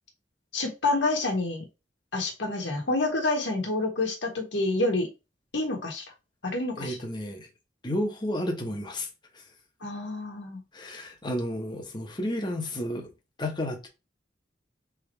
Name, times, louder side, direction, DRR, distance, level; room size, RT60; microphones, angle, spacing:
voice 1, 0.5-1.6 2.1-5.1 5.5-6.0 6.4-7.0 9.8-10.6, left 2 dB, 85° left, 1.3 m, -28 dB
voice 2, 6.8-7.5 7.8-9.1 9.3-9.4 10.7-13.1 13.4-13.9, left 1 dB, 25° left, 0.9 m, -32 dB
3.6 x 3.1 x 4.4 m
head